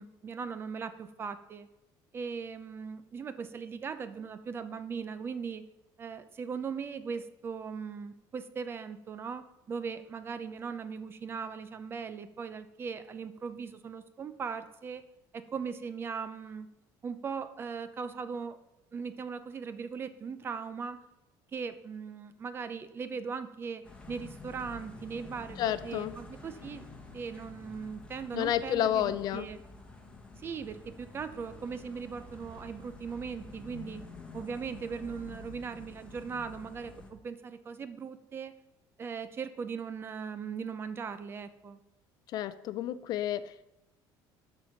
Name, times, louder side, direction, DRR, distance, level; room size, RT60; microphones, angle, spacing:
voice 1, 0.0-1.7 2.1-5.6 6.0-15.0 15.3-16.7 17.0-18.6 18.9-21.0 21.5-26.8 27.1-29.6 30.4-34.0 34.3-38.5 39.0-41.8, right 6 dB, 25° right, 11 dB, 0.6 m, -39 dB
sound 1, 23.8-37.1, left 3 dB, 15° left, 1.2 m, -49 dB
voice 2, 25.6-26.1 28.3-29.5 42.3-43.7, left 11 dB, 50° left, 14 dB, 0.4 m, -30 dB
12.5 x 4.6 x 5.1 m, 0.92 s
cardioid pair, 155°, 9 cm